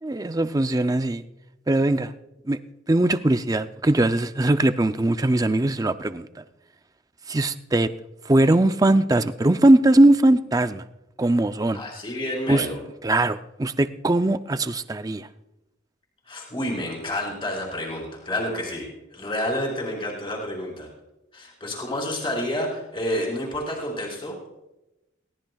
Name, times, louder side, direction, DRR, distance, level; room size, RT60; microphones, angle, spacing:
voice 1, 0.0-1.2 1.7-2.1 2.5-2.6 2.9-6.4 7.3-7.9 8.3-10.8 11.2-11.8 12.5-12.7 13.0-15.3, right 1 dB, 20° right, 0.5 m, -20 dB
voice 2, 11.7-12.8 16.3-20.9 21.3-24.4, left 1 dB, 25° left, 4.7 m, -29 dB
22.0 x 18.0 x 2.3 m
head